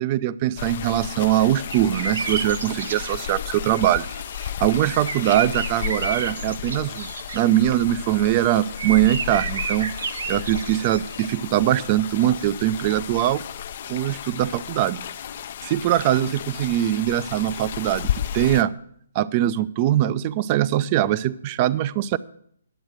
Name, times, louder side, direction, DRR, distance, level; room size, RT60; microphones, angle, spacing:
voice 1, 0.0-4.1 4.6-7.1 7.3-9.9 10.3-13.4 13.9-15.0 15.6-18.7 19.2-22.2, right 13 dB, 35° right, 17 dB, 0.4 m, -22 dB
sound 1, 0.6-18.6, left 10 dB, 50° left, 0.5 m, -33 dB
sound 2, 1.7-3.4 3.7-7.4 8.2-11.4 12.4-12.5, right 4 dB, 65° right, 0.9 m, -32 dB
11.0 x 7.9 x 6.3 m, 0.65 s
figure-of-eight pair, 135°, 0 cm